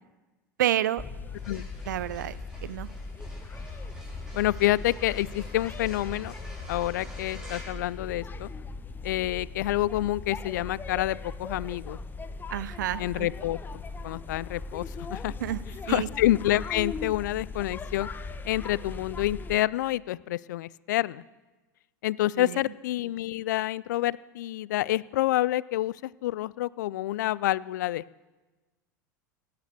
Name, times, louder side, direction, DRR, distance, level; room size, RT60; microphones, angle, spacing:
voice 1, 0.6-1.0 1.9-2.9 12.5-13.3 15.4-15.6 15.9-16.1 22.4-22.6, right 12 dB, 70° right, 19 dB, 0.6 m, -29 dB
sound 1, 1.0-19.6, left 3 dB, 20° left, 0.9 m, -39 dB
sound 2, 1.2-8.7, equal, 5° right, 5.0 m, -50 dB
voice 2, 4.3-6.3 6.7-8.5 9.0-12.0 13.0-15.3 15.9-18.1 18.4-21.2 22.0-28.2, left 15 dB, 65° left, 22 dB, 0.4 m, -28 dB
17.5 x 9.0 x 6.7 m, 1.2 s
hypercardioid pair, 85°, 10 cm